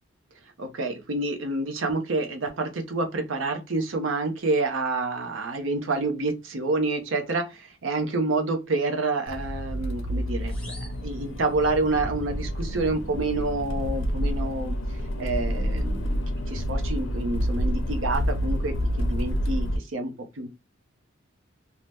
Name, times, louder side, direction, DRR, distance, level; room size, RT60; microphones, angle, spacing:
voice 1, 0.6-10.7 11.0-16.2 16.5-20.5, right 3 dB, 70° right, 0.7 m, -28 dB
Accelerating revving vroom, 9.3-19.8, equal, 70° left, 0.6 m, -28 dB
sound 1, 10.5-12.0, left 2 dB, 5° left, 0.7 m, -48 dB
2.8 x 2.0 x 3.3 m
head